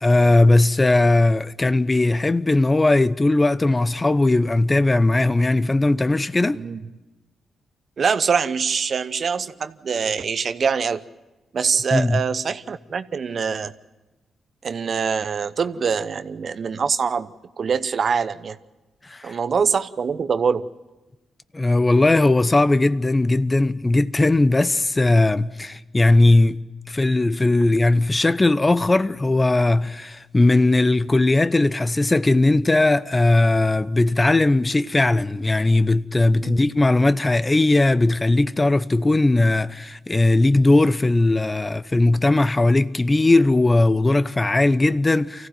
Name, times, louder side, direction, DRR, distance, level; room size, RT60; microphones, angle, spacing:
voice 1, 0.0-6.6 11.9-12.2 19.1-19.4 21.5-26.6 26.9-45.5, left 2 dB, 25° left, 0.8 m, -18 dB
voice 2, 8.0-11.0 11.5-13.7 14.6-17.3 17.6-18.6 19.2-20.7 36.4-36.6, right 6 dB, 55° right, 0.8 m, -24 dB
24.5 x 15.5 x 9.2 m
supercardioid pair, 45°, 0 cm